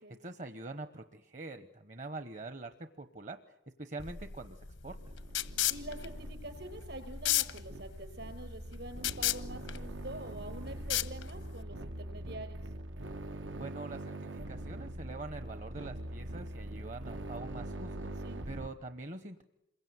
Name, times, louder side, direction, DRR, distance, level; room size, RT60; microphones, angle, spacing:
voice 1, 0.0-5.0 13.5-19.4, right 2 dB, 40° right, 9 dB, 1.0 m, -45 dB
sound 1, 4.0-11.6, left 12 dB, 85° left, 1.1 m, -35 dB
sound 2, 4.8-18.7, right 1 dB, 85° right, 1.3 m, -43 dB
voice 2, 5.7-12.7 18.2-18.4, right 1 dB, 65° right, 8 dB, 5.1 m, -46 dB
27.5 x 23.0 x 9.5 m, 0.84 s
head